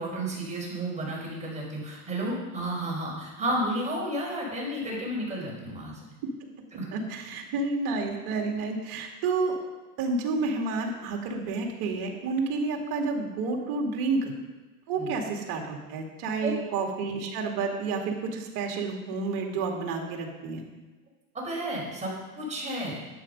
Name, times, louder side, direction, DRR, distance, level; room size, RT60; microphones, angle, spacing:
voice 1, 0.0-6.0 6.7-6.8 15.0-15.1 16.4-16.5 21.3-22.9, right 1 dB, 15° right, -3 dB, 4.7 m, -32 dB
voice 2, 6.9-9.6 10.0-14.3 14.9-20.6, right 4 dB, 50° right, 2 dB, 2.5 m, -30 dB
12.0 x 8.7 x 5.3 m, 1.2 s
supercardioid pair, 125°, 45 cm